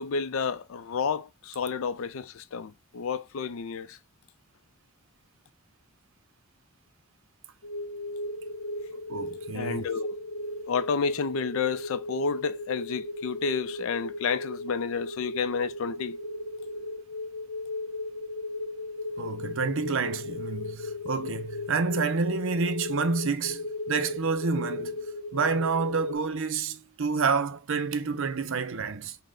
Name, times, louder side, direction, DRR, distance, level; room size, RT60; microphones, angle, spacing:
voice 1, 0.0-4.0 9.5-10.2 10.7-16.2, left 5 dB, 65° left, 0.4 m, -30 dB
sound 1, 7.6-26.2, left 2 dB, 90° left, 0.8 m, -36 dB
voice 2, 9.1-9.9 19.2-25.0 25.3-29.2, right 4 dB, 65° right, 0.6 m, -29 dB
5.4 x 2.1 x 3.6 m
head